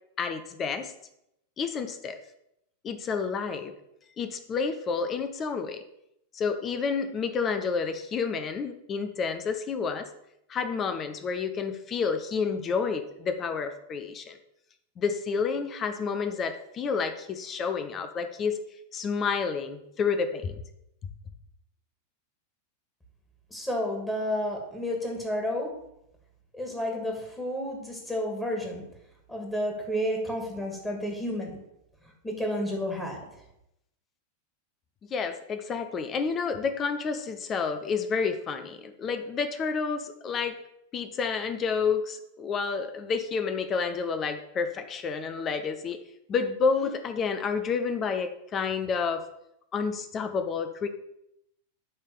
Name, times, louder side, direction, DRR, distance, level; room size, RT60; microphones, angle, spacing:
voice 1, 0.2-0.9 1.6-2.2 2.8-3.7 4.2-5.8 6.3-10.1 10.5-14.4 15.0-18.6 18.9-20.5 35.1-40.6 40.9-46.0 46.3-49.3 49.7-50.9, left 5 dB, 30° left, 8 dB, 0.8 m, -29 dB
voice 2, 23.5-25.7 26.5-28.8 29.3-31.6 32.2-33.2, equal, 10° left, 1 dB, 2.3 m, -31 dB
9.5 x 3.7 x 7.0 m, 0.80 s
figure-of-eight pair, 90°, 0 cm